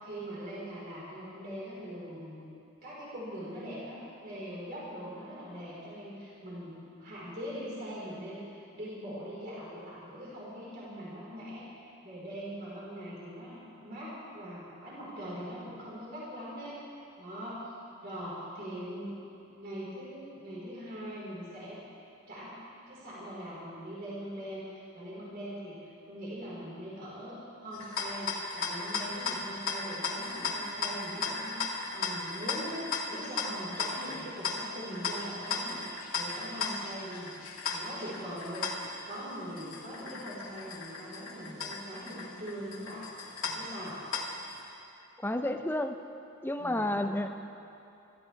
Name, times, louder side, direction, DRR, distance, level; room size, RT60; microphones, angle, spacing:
voice 1, 0.0-2.5 2.8-16.8 17.2-17.6 18.0-19.2 19.5-21.8 22.3-22.5 22.9-25.7 26.1-32.8 33.1-35.8 36.1-37.4 37.7-38.7 39.1-43.1 43.4-44.0 46.6-47.1, equal, 45° right, -7 dB, 4.6 m, -42 dB
sound 1, 27.7-44.6, left 4 dB, 85° left, 2.0 m, -36 dB
voice 2, 45.2-46.0 46.4-47.3, left 1 dB, 10° left, 7 dB, 0.6 m, -30 dB
25.0 x 14.0 x 3.5 m, 2.8 s
head